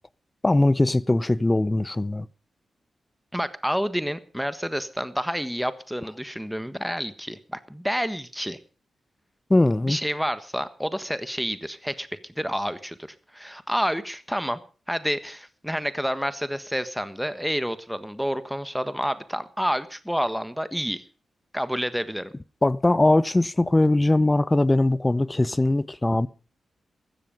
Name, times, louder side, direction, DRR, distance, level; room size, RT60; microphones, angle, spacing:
voice 1, 0.4-2.3 9.5-10.0 22.6-26.3, left 2 dB, 25° left, 0.7 m, -21 dB
voice 2, 3.3-8.6 9.8-13.0 13.3-14.6 14.9-21.0 21.5-22.3, equal, ahead, 1.4 m, -29 dB
15.5 x 13.0 x 5.2 m
supercardioid pair, 45°, 0 cm